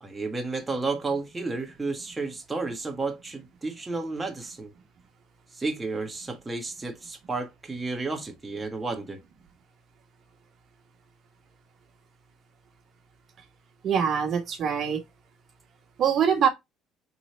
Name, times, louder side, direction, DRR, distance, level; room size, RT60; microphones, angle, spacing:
voice 1, 0.0-4.7 5.5-9.2, right 3 dB, 15° right, 1.1 m, -32 dB
voice 2, 13.8-15.0 16.0-16.5, right 7 dB, 50° right, 1.1 m, -23 dB
3.8 x 3.1 x 4.1 m
supercardioid pair, 95°, 0 cm